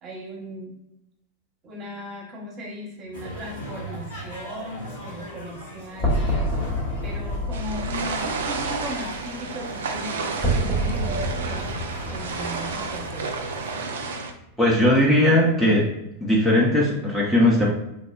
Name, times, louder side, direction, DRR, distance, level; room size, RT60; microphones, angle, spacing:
voice 1, 0.0-0.8 1.6-6.7 7.0-11.7 12.1-13.3, equal, 30° right, -1 dB, 0.8 m, -37 dB
sound 1, 3.1-13.9, equal, 70° left, 1.1 m, -40 dB
sound 2, 6.0-14.0, equal, 25° left, 1.0 m, -28 dB
sound 3, 7.5-14.3, right 4 dB, 60° right, 0.3 m, -31 dB
voice 2, 14.6-15.9 16.2-17.7, left 1 dB, 5° left, -5 dB, 0.5 m, -18 dB
3.2 x 2.1 x 2.3 m, 0.86 s
figure-of-eight pair, 90°, 0 cm